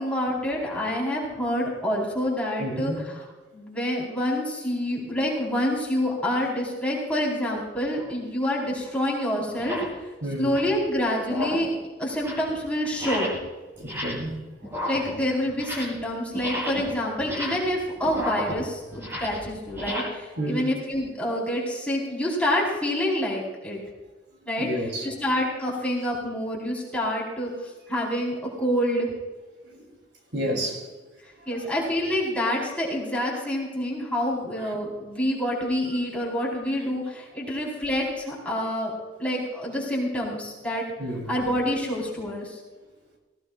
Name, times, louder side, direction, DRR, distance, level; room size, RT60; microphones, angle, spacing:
voice 1, 0.0-3.2 3.5-9.8 10.4-11.7 12.0-13.3 14.9-23.8 24.4-24.7 25.0-27.5 27.9-29.1 31.5-38.9 39.2-40.8 41.3-42.6, equal, 5° left, -4 dB, 4.2 m, -27 dB
voice 2, 2.6-3.0 10.2-10.5 13.8-14.4 20.4-20.7 24.6-25.1 29.7-29.8 30.3-30.9 34.6-34.7 41.0-41.4, equal, 75° right, 1 dB, 3.2 m, -30 dB
sound 1, 8.0-8.1 8.8-8.9 9.5-10.0 10.3-10.8 11.2-11.8 12.1-12.5 12.9-13.5 13.8-14.3 14.6-16.0 16.3-20.0, left 1 dB, 15° right, 4.6 m, -33 dB
18.5 x 17.5 x 2.4 m, 1.2 s
head